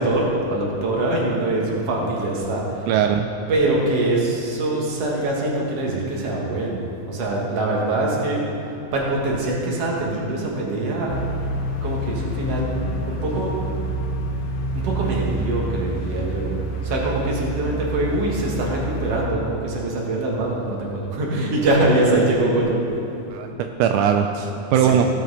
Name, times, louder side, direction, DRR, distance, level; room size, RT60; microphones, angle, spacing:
voice 1, 0.0-2.9 3.5-8.4 8.9-11.1 11.8-12.7 13.1-13.6 14.7-22.8 24.8-25.0, right 2 dB, 50° right, -3 dB, 2.4 m, -23 dB
voice 2, 2.9-3.3 23.3-25.1, right 8 dB, 85° right, 5 dB, 1.8 m, -20 dB
sound 1, 11.1-19.2, right 1 dB, 75° left, 1.2 m, -28 dB
17.0 x 7.4 x 4.2 m, 2.9 s
omnidirectional pair, 4.0 m